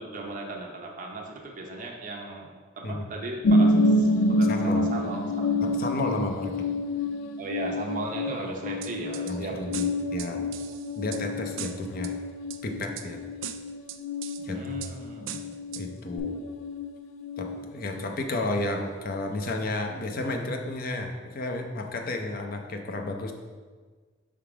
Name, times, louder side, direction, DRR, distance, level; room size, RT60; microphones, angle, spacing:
voice 1, 0.0-5.3 7.4-9.8 14.5-15.4, right 2 dB, 45° right, 0 dB, 0.7 m, -36 dB
sound 1, 3.4-16.9 17.2-18.0 18.4-18.5, left 1 dB, 85° left, 0.3 m, -28 dB
voice 2, 4.5-4.9 5.6-6.7 9.3-10.5 11.0-12.1 12.6-13.2 14.4-14.9 15.8-16.4 17.4-23.3, left 2 dB, 50° left, 4 dB, 0.6 m, -32 dB
sound 2, 8.8-9.3 9.7-11.2 11.6-12.1 12.5-13.1 13.4-14.4 14.8-14.9 15.3-15.8 16.2-16.3, right 10 dB, 85° right, 0.4 m, -39 dB
5.8 x 3.7 x 4.7 m, 1.5 s
head